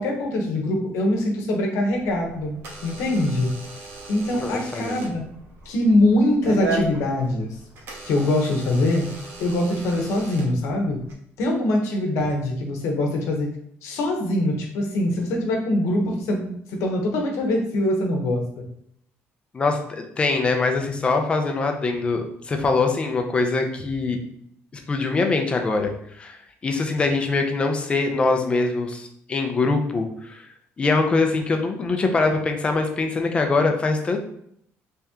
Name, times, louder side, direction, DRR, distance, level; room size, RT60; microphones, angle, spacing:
voice 1, 0.0-2.6 2.8-3.5 4.1-5.2 5.6-7.5 8.1-9.1 9.4-11.0 11.4-13.5 13.8-18.4, left 1 dB, 85° left, 2 dB, 0.9 m, -23 dB
Door / Alarm, 1.9-11.1, right 3 dB, 55° right, 0.9 m, -36 dB
voice 2, 4.4-5.1 19.5-24.2 24.7-26.4 26.6-30.5 30.8-34.2, left 3 dB, 20° left, 4 dB, 0.5 m, -23 dB
3.4 x 2.9 x 3.5 m, 0.70 s
cardioid pair, 160°, 5 cm